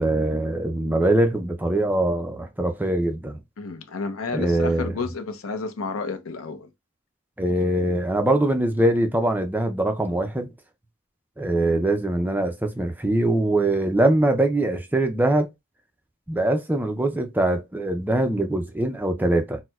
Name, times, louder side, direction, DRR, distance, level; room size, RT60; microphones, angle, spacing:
voice 1, 0.0-3.4 4.3-4.9 7.4-10.5 11.4-15.5 16.3-19.6, right 1 dB, 10° right, 0.4 m, -22 dB
voice 2, 3.6-6.7, left 4 dB, 75° left, 0.6 m, -31 dB
4.3 x 2.1 x 2.3 m
head